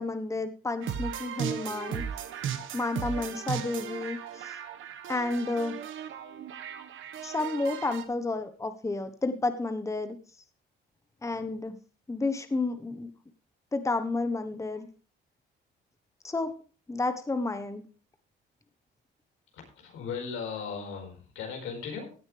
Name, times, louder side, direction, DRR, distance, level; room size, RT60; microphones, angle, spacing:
voice 1, 0.0-2.0 2.7-4.6 5.1-5.8 7.2-10.2 11.2-11.8 12.1-13.1 13.7-14.9 16.2-16.5 16.9-17.8, left 3 dB, 15° left, 9 dB, 1.2 m, -31 dB
sound 1, 0.8-8.0, right 8 dB, 80° right, 1.4 m, -36 dB
voice 2, 19.5-22.1, left 6 dB, 90° left, 2 dB, 5.0 m, -37 dB
16.0 x 9.4 x 3.3 m, 0.37 s
cardioid pair, 90°, 20 cm